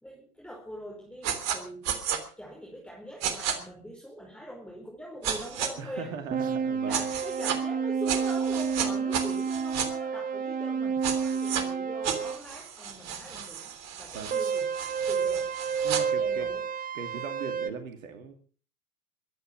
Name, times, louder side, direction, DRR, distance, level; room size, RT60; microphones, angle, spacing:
voice 1, 0.0-1.9 2.4-6.1 6.7-14.7 15.1-15.5 16.2-16.7, equal, ahead, -1 dB, 4.8 m, -43 dB
sound 1, 1.2-1.6 1.8-2.2 3.2-3.5 5.2-5.7 6.9-7.6 8.1-9.9 11.0-11.6 12.0-16.0, right 8 dB, 35° right, 3.2 m, -33 dB
voice 2, 5.8-7.1 14.1-14.3 15.8-16.5 16.9-18.3, right 6 dB, 60° right, 7 dB, 2.5 m, -39 dB
sound 2, 6.3-12.4 14.3-17.7, right 6 dB, 20° right, 1.1 m, -30 dB
23.0 x 10.0 x 6.2 m, 0.43 s
figure-of-eight pair, 95°, 45 cm